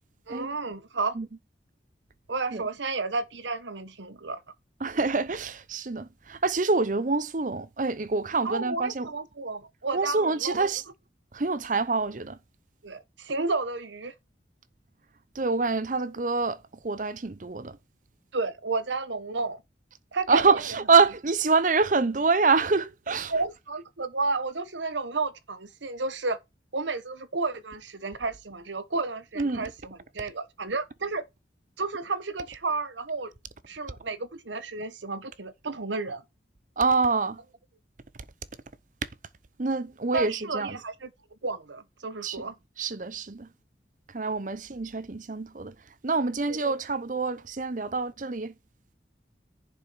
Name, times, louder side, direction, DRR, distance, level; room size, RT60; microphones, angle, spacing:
voice 1, 0.3-1.2 2.3-4.4 8.4-10.7 12.8-14.1 18.3-19.6 20.1-20.4 23.3-26.4 26.7-31.2 31.8-33.3 33.7-36.2 40.1-41.1 41.4-42.6 46.4-46.6, right 3 dB, 80° right, 1.2 m, -32 dB
voice 2, 4.8-9.1 9.9-10.8 11.3-12.4 15.3-16.6 16.8-17.8 20.3-23.3 29.4-29.6 36.8-37.4 39.6-40.8 42.2-42.4 42.8-43.5 44.1-45.7 46.0-48.5, right 4 dB, 45° right, 0.7 m, -26 dB
11.0 x 5.7 x 4.7 m
head